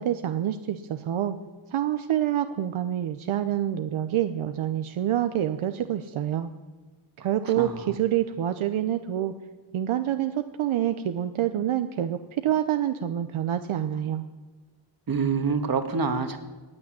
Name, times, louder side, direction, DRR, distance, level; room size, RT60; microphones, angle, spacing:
voice 1, 0.0-1.4 1.7-6.5 7.2-9.3 9.7-14.2, right 11 dB, 75° right, 9 dB, 0.9 m, -27 dB
voice 2, 7.4-8.0 15.1-16.4, right 5 dB, 45° right, 7 dB, 1.7 m, -27 dB
15.0 x 8.7 x 9.8 m, 1.3 s
cardioid pair, 105°, 50 cm